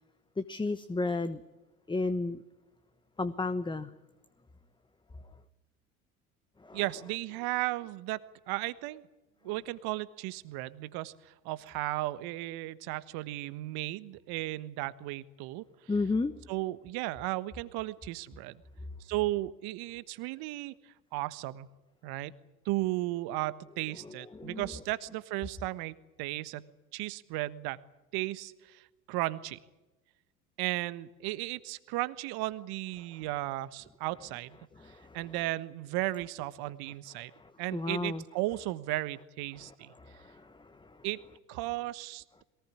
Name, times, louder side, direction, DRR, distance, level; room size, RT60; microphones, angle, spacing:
voice 1, 0.4-1.4 1.9-2.4 3.2-3.9 6.6-6.8 15.9-16.3 24.0-24.7 34.7-35.2 37.3-38.2 39.5-41.1, left 3 dB, 10° left, 13 dB, 1.1 m, -34 dB
voice 2, 6.7-8.2 8.5-9.0 9.4-15.6 16.5-18.6 19.0-20.7 21.1-21.7 22.0-22.3 22.6-26.6 26.9-27.8 28.1-29.6 30.6-34.6 35.1-37.3 37.6-39.9 41.0-41.2 41.5-42.2, right 18 dB, 55° right, 15 dB, 1.4 m, -35 dB
22.5 x 19.0 x 9.8 m, 1.1 s
hypercardioid pair, 75°, 44 cm